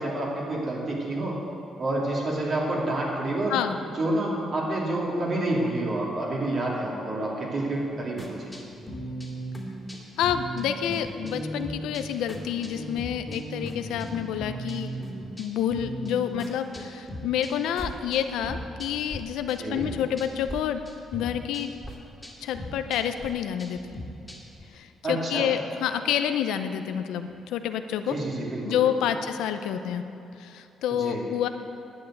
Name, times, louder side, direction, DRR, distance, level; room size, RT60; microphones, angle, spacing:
voice 1, 0.0-1.4 1.8-3.6 4.0-8.5 19.6-19.8 25.0-25.5 28.1-29.1 30.9-31.2, right 1 dB, 50° right, -3 dB, 3.4 m, -28 dB
sound 1, 8.2-19.2 19.5-20.6 20.8-24.6, equal, 5° left, 2.5 m, -38 dB
voice 2, 10.2-14.9 15.4-20.8 21.1-21.7 22.4-23.9 24.7-28.2 28.6-30.0 30.4-31.5, left 9 dB, 90° left, 8 dB, 0.7 m, -28 dB
11.0 x 9.5 x 7.8 m, 2.8 s
cardioid pair, 90°, 0 cm